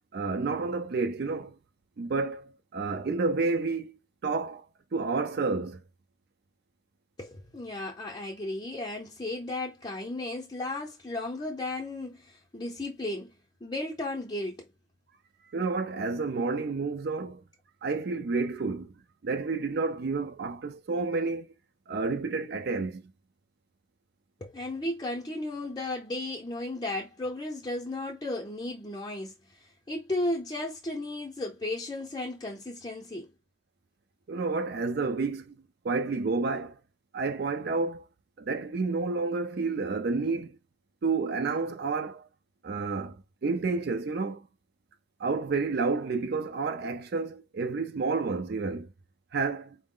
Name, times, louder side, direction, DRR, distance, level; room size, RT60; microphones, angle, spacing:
voice 1, 0.1-1.6 2.0-3.9 4.2-4.7 4.9-5.8 15.5-17.4 17.8-18.9 19.2-21.5 21.9-23.0 34.3-35.6 35.8-36.8 37.1-38.1 38.4-40.6 41.0-42.3 42.6-44.5 45.2-48.9 49.3-49.8, right 4 dB, 50° right, 0.4 m, -30 dB
voice 2, 7.2-13.3 13.6-14.7 24.4-33.3, left 2 dB, 20° left, 0.6 m, -34 dB
4.5 x 2.0 x 3.7 m
head